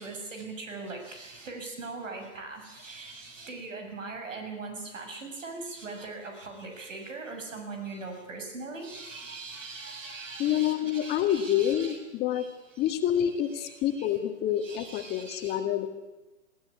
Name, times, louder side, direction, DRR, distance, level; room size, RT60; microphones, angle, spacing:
voice 1, 0.0-12.0 12.3-12.9 13.3-14.2 14.6-15.7, right 3 dB, 75° right, 5 dB, 7.0 m, -41 dB
voice 2, 10.4-12.4 12.8-15.9, left 10 dB, 25° left, 6 dB, 1.9 m, -27 dB
21.0 x 16.0 x 9.7 m, 1.1 s
hypercardioid pair, 130°, 38 cm